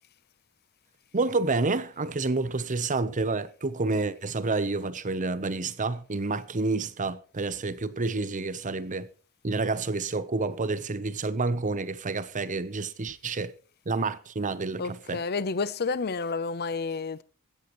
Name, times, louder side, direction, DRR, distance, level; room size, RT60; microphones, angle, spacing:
voice 1, 1.1-9.1 9.4-13.5 13.9-15.2, right 3 dB, 35° right, 0.8 m, -29 dB
voice 2, 14.8-17.2, left 4 dB, 45° left, 0.7 m, -30 dB
16.5 x 14.0 x 3.1 m
head